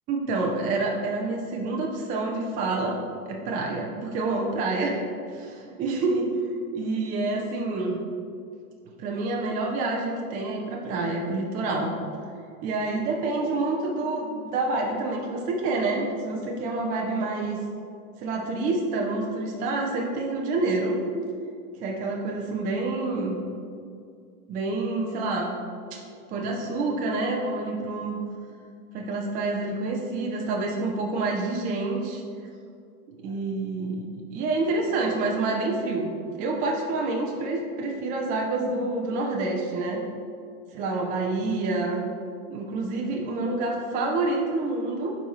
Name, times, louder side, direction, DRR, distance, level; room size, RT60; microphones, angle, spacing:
voice 1, 0.1-5.0 5.3-6.3 6.7-8.0 9.0-11.9 12.6-17.6 18.2-21.0 21.8-23.4 24.5-25.6 25.9-26.0 26.3-28.2 28.9-32.2 33.2-34.1 34.3-36.1 36.4-40.0 40.7-42.1 42.5-45.2, right 3 dB, 20° right, 0 dB, 0.4 m, -27 dB
9.9 x 4.0 x 3.0 m, 2.4 s
hypercardioid pair, 120°, 46 cm